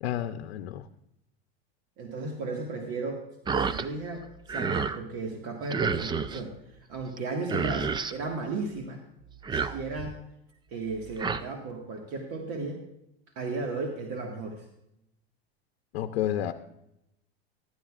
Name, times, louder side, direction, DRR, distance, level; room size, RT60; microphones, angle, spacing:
voice 1, 0.0-0.8 15.9-16.5, left 11 dB, 80° left, 8 dB, 0.7 m, -30 dB
voice 2, 2.0-3.2 3.5-9.0 9.5-10.2 10.7-12.8 13.4-14.6, right 3 dB, 50° right, 2 dB, 1.7 m, -35 dB
sound 1, 3.5-3.9 4.2-5.0 5.7-6.4 7.2-7.3 7.4-8.2 9.3-10.2 10.9-11.4, right 5 dB, 15° right, 0.4 m, -30 dB
14.0 x 13.5 x 2.4 m, 0.82 s
supercardioid pair, 110°, 31 cm